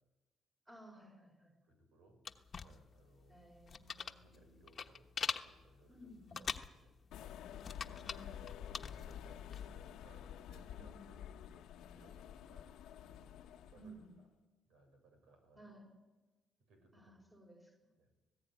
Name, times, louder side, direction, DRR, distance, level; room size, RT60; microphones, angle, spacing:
voice 1, 0.7-1.5 3.3-4.5 5.9-6.4 8.0-8.5 10.7-11.1 13.8-14.1 15.6-15.9 16.9-17.9, right 1 dB, 20° right, -1 dB, 5.3 m, -58 dB
voice 2, 1.7-2.2 2.5-3.4 4.2-7.0 7.9-8.2 8.9-11.7 11.9-12.7 13.0-13.4 13.7-14.3 14.6-15.7 16.7-17.2 18.0-18.1, right 2 dB, 85° right, 5 dB, 6.1 m, -66 dB
sound 1, 2.2-9.7, left 6 dB, 45° left, 1.2 m, -44 dB
sound 2, 7.1-14.1, left 9 dB, 85° left, 1.0 m, -50 dB
19.0 x 15.5 x 9.4 m, 1.2 s
cardioid pair, 90°, 0 cm